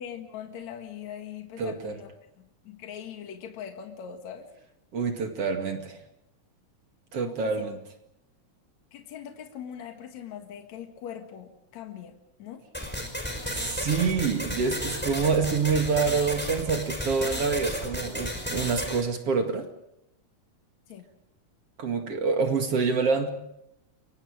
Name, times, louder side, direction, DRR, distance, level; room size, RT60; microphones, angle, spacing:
voice 1, 0.0-2.1 2.4-4.5 7.2-7.6 8.9-12.6 20.9-21.1, left 9 dB, 70° left, 5 dB, 3.0 m, -41 dB
voice 2, 1.6-2.0 4.9-6.0 7.1-7.8 13.5-19.7 21.8-23.3, right 5 dB, 55° right, 5 dB, 3.1 m, -26 dB
sound 1, 12.7-19.0, equal, 5° left, 4.5 m, -33 dB
29.5 x 23.5 x 5.0 m, 0.80 s
omnidirectional pair, 3.4 m